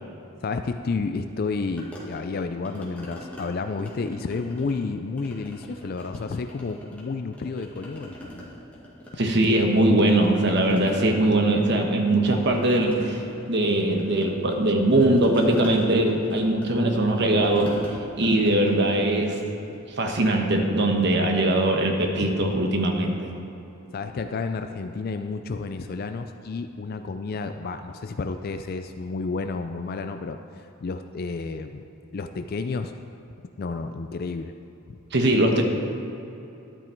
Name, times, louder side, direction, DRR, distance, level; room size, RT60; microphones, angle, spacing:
voice 1, 0.4-8.5 23.9-30.4 30.8-31.9 32.1-32.9 33.6-34.5, left 4 dB, 50° left, 8 dB, 0.4 m, -31 dB
sound 1, 1.8-3.5 3.8-4.9 5.2-7.0 7.3-9.7 10.0-19.8, equal, 5° left, 2.1 m, -41 dB
voice 2, 9.2-13.2 13.5-17.7 18.2-19.4 20.0-23.3 35.1-35.6, right 1 dB, 60° right, 3 dB, 1.2 m, -21 dB
12.0 x 9.1 x 4.5 m, 2.9 s
head